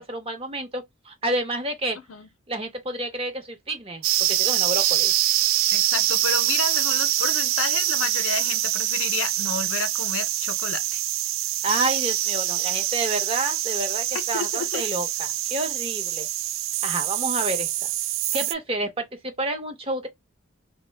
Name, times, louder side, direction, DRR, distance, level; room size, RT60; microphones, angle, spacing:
voice 1, 0.0-2.0 2.5-4.0 4.4-5.1 11.6-16.3 16.8-17.9 18.3-20.1, right 2 dB, 30° right, 0.6 m, -29 dB
sound 1, 4.0-18.5, right 14 dB, 80° right, 0.3 m, -25 dB
voice 2, 5.7-11.0 14.3-14.8, left 6 dB, 80° left, 0.5 m, -31 dB
2.7 x 2.0 x 3.2 m
head